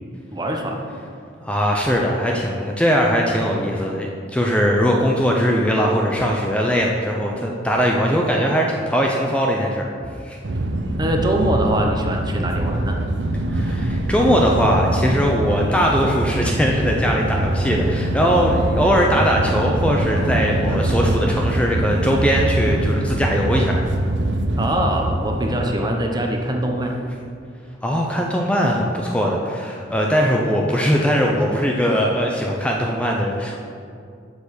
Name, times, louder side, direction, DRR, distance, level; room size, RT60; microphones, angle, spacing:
voice 1, 0.3-0.8 11.0-13.0 24.5-26.9, right 1 dB, 25° right, 1 dB, 1.0 m, -23 dB
voice 2, 1.4-9.9 10.2-10.4 13.5-23.8 27.8-33.6, equal, 5° left, -1 dB, 0.6 m, -20 dB
sound 1, 10.4-25.7, right 1 dB, 85° right, 0.7 m, -23 dB
7.2 x 7.0 x 6.6 m, 2.3 s
head